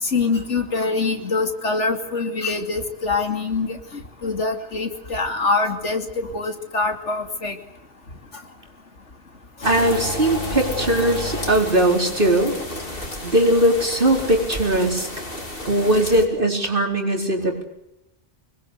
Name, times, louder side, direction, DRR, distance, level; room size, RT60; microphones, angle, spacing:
voice 1, 0.0-7.6, left 3 dB, 80° left, 6 dB, 3.1 m, -24 dB
sound 1, 9.6-16.3, left 1 dB, 50° left, 3.8 m, -31 dB
voice 2, 9.6-12.5 13.2-15.1 15.7-17.6, right 1 dB, 50° right, 3 dB, 4.4 m, -19 dB
26.0 x 21.0 x 8.2 m, 0.84 s
omnidirectional pair, 1.2 m